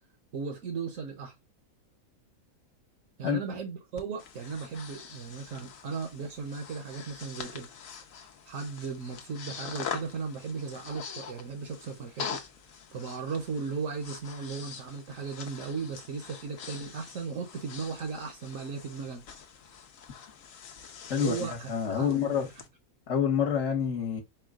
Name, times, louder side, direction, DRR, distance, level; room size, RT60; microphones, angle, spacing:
voice 1, 0.3-1.3 3.2-7.7 8.4-12.4 12.9-19.2 21.2-22.4, right 5 dB, 65° right, 1.2 m, -36 dB
Breathing, 4.0-22.7, left 7 dB, 70° left, 1.1 m, -44 dB
voice 2, 21.1-22.5 23.1-24.2, left 7 dB, 55° left, 1.4 m, -28 dB
4.6 x 2.2 x 3.6 m
omnidirectional pair, 1.5 m